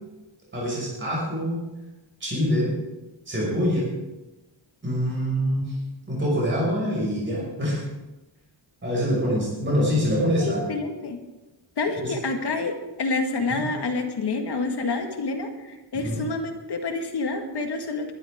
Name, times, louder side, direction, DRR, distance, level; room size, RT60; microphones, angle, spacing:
voice 1, 0.5-1.6 2.2-2.7 3.3-3.8 4.8-5.8 6.1-7.8 8.8-10.6 12.0-12.1 13.5-13.6 16.0-16.2, equal, 25° right, -5 dB, 5.9 m, -25 dB
voice 2, 10.4-11.2 11.8-18.1, left 3 dB, 60° left, 4 dB, 2.0 m, -28 dB
20.5 x 12.5 x 3.7 m, 1.1 s
wide cardioid pair, 175°, 45 cm